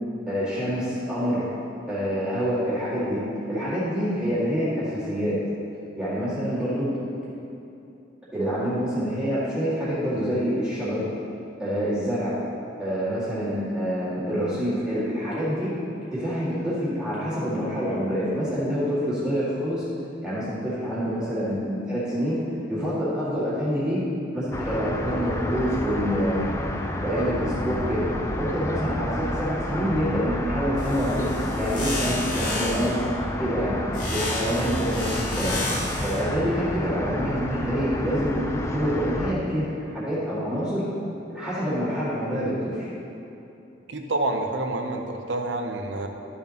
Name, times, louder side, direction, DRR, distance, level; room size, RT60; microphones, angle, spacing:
voice 1, 0.3-1.5 1.9-5.4 6.0-6.9 8.3-11.0 11.6-12.4 12.8-15.8 16.1-19.8 20.2-22.4 22.7-24.0 24.3-26.5 27.0-28.1 28.4-31.3 31.6-33.0 33.4-33.8 34.1-35.6 36.0-40.9 41.3-42.9, equal, 5° right, -12 dB, 2.0 m, -26 dB
sound 1, 24.5-39.3, left 1 dB, 15° left, 0.4 m, -30 dB
sound 2, 30.8-33.0 33.9-36.2, left 1 dB, 40° left, 2.1 m, -32 dB
voice 2, 43.9-46.1, right 2 dB, 70° right, 4 dB, 0.7 m, -28 dB
12.0 x 7.0 x 2.9 m, 2.9 s
head